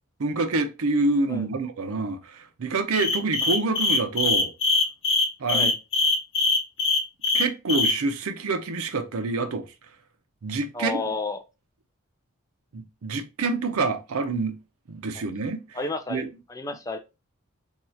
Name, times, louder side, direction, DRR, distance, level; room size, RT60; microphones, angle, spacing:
voice 1, 0.2-4.5 5.4-5.7 7.3-9.7 10.4-11.1 12.7-14.6 14.9-15.6 16.1-16.3, right 3 dB, 75° right, 0.6 m, -27 dB
sound 1, 2.9-7.9, left 3 dB, 60° left, 0.7 m, -22 dB
voice 2, 10.7-11.4 15.7-16.2 16.5-17.0, left 3 dB, 15° left, 0.3 m, -31 dB
2.7 x 2.4 x 4.2 m
head